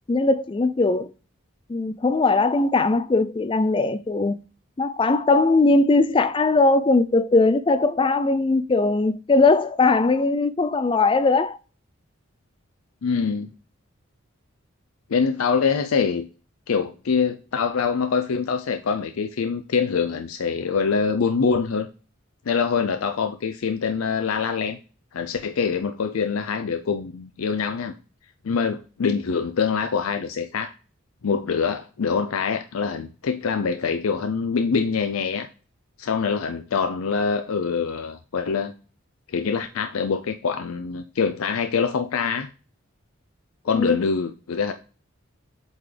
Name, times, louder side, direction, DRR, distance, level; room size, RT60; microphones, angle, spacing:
voice 1, 0.1-1.1 1.7-4.4 4.8-11.6 43.7-44.0, left 3 dB, 25° left, 0.3 m, -20 dB
voice 2, 13.0-13.5 15.1-16.3 16.7-21.9 22.5-24.8 25.1-27.9 28.4-30.7 31.2-35.5 36.0-38.7 39.3-42.5 43.6-44.7, left 5 dB, 80° left, 0.5 m, -24 dB
7.9 x 3.8 x 3.3 m
head